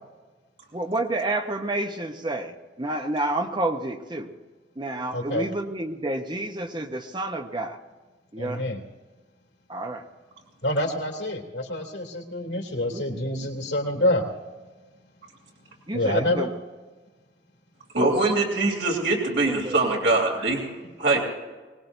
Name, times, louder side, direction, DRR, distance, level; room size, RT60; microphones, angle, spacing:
voice 1, 0.7-4.3 4.8-7.8 8.3-8.6 9.7-10.1 12.9-13.5 15.9-16.5 19.4-20.2, right 2 dB, 25° right, 5 dB, 0.9 m, -30 dB
voice 2, 5.1-5.4 8.4-8.8 10.6-14.3 15.9-16.5, left 1 dB, 80° left, 3 dB, 2.8 m, -27 dB
voice 3, 17.9-20.7 21.0-21.2, right 2 dB, 80° right, -2 dB, 3.4 m, -22 dB
24.0 x 19.5 x 2.7 m, 1.3 s
head